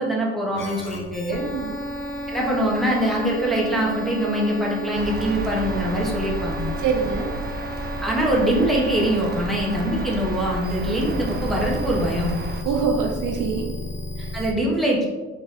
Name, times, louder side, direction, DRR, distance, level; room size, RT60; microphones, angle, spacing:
voice 1, 0.0-1.4 2.3-6.7 8.0-12.3 14.3-15.1, right 1 dB, ahead, -4 dB, 1.2 m, -23 dB
sound 1, 0.5-14.5, equal, 40° left, 0.8 m, -33 dB
sound 2, 5.0-12.6, right 2 dB, 35° right, 0.5 m, -32 dB
voice 2, 6.8-7.3 12.6-13.7 14.2-14.3, right 5 dB, 90° right, 1 dB, 0.9 m, -25 dB
3.4 x 3.3 x 4.2 m, 1.2 s
cardioid pair, 90°, 30 cm